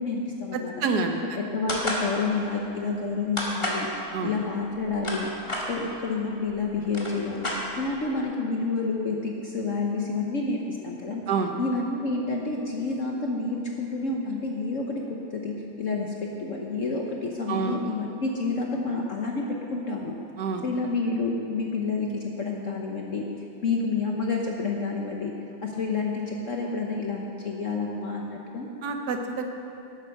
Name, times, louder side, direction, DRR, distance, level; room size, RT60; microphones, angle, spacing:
voice 1, 0.0-0.7 1.5-3.9 4.2-5.3 5.7-11.2 11.6-20.1 20.6-23.3 23.6-25.3 25.6-28.7, left 3 dB, 55° left, 0 dB, 0.9 m, -29 dB
voice 2, 0.8-1.4 4.1-4.3 11.3-11.5 17.5-17.8 20.4-20.6 28.8-29.5, right 4 dB, 60° right, 4 dB, 1.3 m, -27 dB
sound 1, 1.7-2.1 3.4-3.8 4.7-5.7 6.5-6.6 6.8-8.0, left 1 dB, 15° left, 1.5 m, -30 dB
11.0 x 8.9 x 6.4 m, 2.8 s
omnidirectional pair, 2.3 m